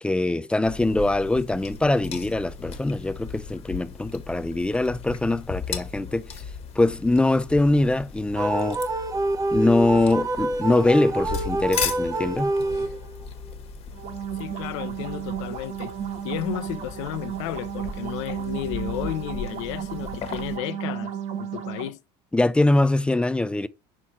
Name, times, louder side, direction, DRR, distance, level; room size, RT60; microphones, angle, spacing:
voice 1, 0.0-6.3 6.8-8.8 9.5-12.5 22.3-23.7, left 2 dB, 5° left, 0.4 m, -22 dB
sound 1, 0.6-20.6, left 6 dB, 40° left, 1.6 m, -37 dB
sound 2, 8.4-13.2, right 2 dB, 25° right, 0.9 m, -27 dB
sound 3, 13.9-21.9, right 9 dB, 50° right, 1.5 m, -33 dB
voice 2, 14.3-15.9 16.2-21.1 21.4-22.0, left 13 dB, 90° left, 0.8 m, -33 dB
5.9 x 4.6 x 4.2 m
cardioid pair, 125°, 15 cm